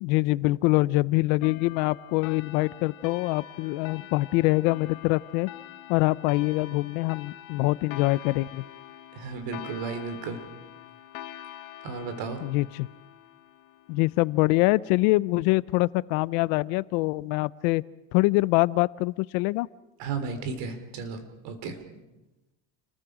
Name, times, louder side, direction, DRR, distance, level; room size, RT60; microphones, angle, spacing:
voice 1, 0.0-5.5 5.9-8.6 12.4-12.9 13.9-17.8 18.1-19.7, left 21 dB, 80° left, 19 dB, 0.7 m, -24 dB
sound 1, 1.4-14.5, left 12 dB, 50° left, 1.3 m, -45 dB
voice 2, 9.1-10.4 11.8-12.4 20.0-21.2 21.4-21.8, right 5 dB, 65° right, 8 dB, 3.6 m, -33 dB
29.5 x 20.5 x 5.0 m, 1.0 s
cardioid pair, 160°, 45 cm